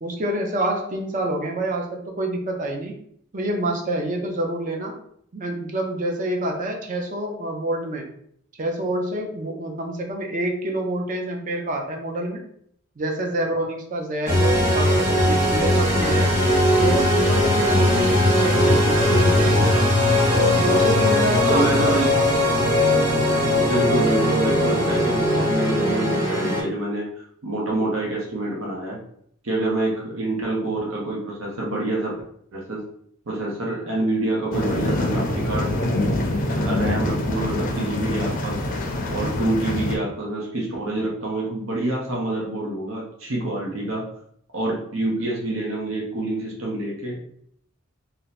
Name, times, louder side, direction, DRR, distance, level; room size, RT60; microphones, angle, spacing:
voice 1, 0.0-2.9 3.3-5.0 5.3-8.1 8.6-12.4 13.0-16.3 16.8-19.9 20.3-22.3, right 1 dB, 40° right, 2 dB, 0.5 m, -27 dB
sound 1, 14.3-26.6, left 1 dB, 15° right, 1.1 m, -19 dB
voice 2, 21.5-22.1 23.4-29.0 29.4-32.1 32.5-32.8 33.3-35.7 36.5-38.6 39.1-44.0 44.5-47.2, right 2 dB, 75° right, -3 dB, 0.8 m, -27 dB
sound 2, 34.5-40.0, left 1 dB, 40° left, 0.5 m, -25 dB
2.7 x 2.1 x 4.0 m, 0.67 s
head